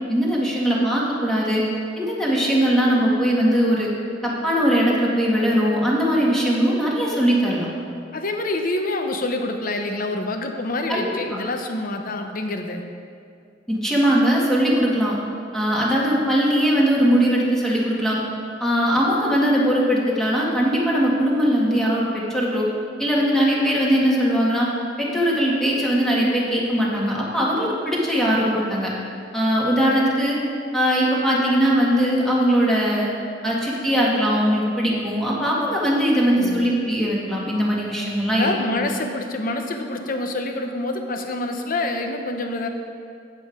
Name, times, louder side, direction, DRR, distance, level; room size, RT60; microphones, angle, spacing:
voice 1, 0.1-1.6 2.0-3.9 4.2-7.7 10.9-11.4 13.7-15.2 15.5-18.2 18.6-22.7 23.0-24.7 25.0-28.9 29.3-30.4 30.7-33.1 33.4-38.5 38.7-38.9, equal, 5° left, -5 dB, 1.5 m, -20 dB
voice 2, 8.1-12.8 36.3-36.7 38.3-42.7, left 2 dB, 50° left, 5 dB, 0.8 m, -27 dB
8.4 x 7.6 x 5.0 m, 2.3 s
head